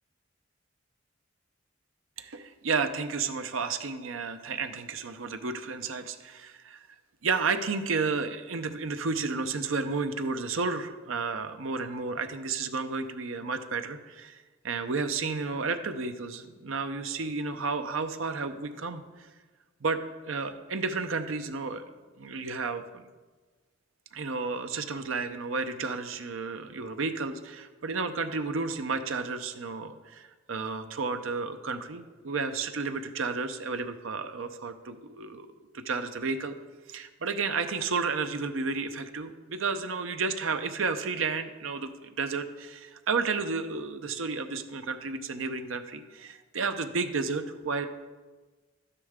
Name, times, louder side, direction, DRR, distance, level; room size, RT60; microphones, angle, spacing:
voice 1, 2.2-6.9 7.2-19.3 19.8-21.9 22.2-23.1 24.1-35.5 35.7-36.5 36.9-47.9, right 4 dB, 80° right, 8 dB, 0.7 m, -32 dB
11.5 x 9.8 x 3.6 m, 1.3 s
head